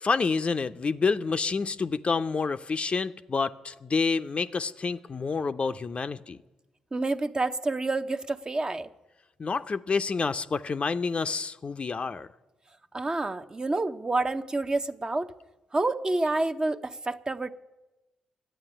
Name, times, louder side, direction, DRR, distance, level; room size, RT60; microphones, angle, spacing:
voice 1, 0.0-6.4 9.4-12.3, left 4 dB, 40° left, 0.5 m, -28 dB
voice 2, 6.9-8.9 12.9-15.3 15.7-17.5, right 2 dB, 30° right, 0.7 m, -28 dB
11.5 x 8.9 x 9.9 m
hypercardioid pair, 40°, 3 cm